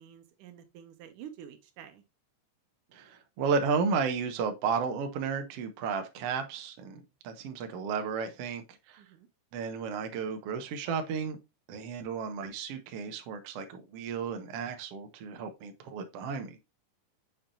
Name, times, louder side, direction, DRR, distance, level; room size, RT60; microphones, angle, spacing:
voice 1, 0.0-2.0 9.0-9.3, right 9 dB, 80° right, 2.5 m, -49 dB
voice 2, 2.9-9.0 9.5-11.4 11.7-16.5, right 5 dB, 60° right, 1.8 m, -33 dB
7.3 x 5.8 x 2.5 m
omnidirectional pair, 3.6 m